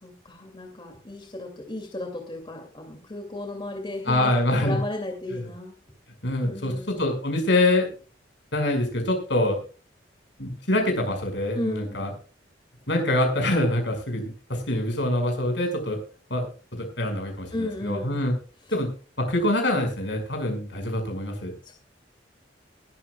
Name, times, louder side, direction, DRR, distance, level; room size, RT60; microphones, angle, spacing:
voice 1, 0.0-5.7 6.4-7.0 11.5-12.0 17.5-18.2 21.6-21.7, left 1 dB, 25° left, 2 dB, 2.6 m, -34 dB
voice 2, 4.0-4.8 5.3-5.4 6.2-7.9 8.5-9.6 10.4-12.1 12.9-16.0 16.3-16.5 16.7-18.3 18.7-18.9 19.2-21.5, left 1 dB, 70° left, 4 dB, 5.8 m, -25 dB
21.5 x 13.0 x 2.4 m, 0.36 s
head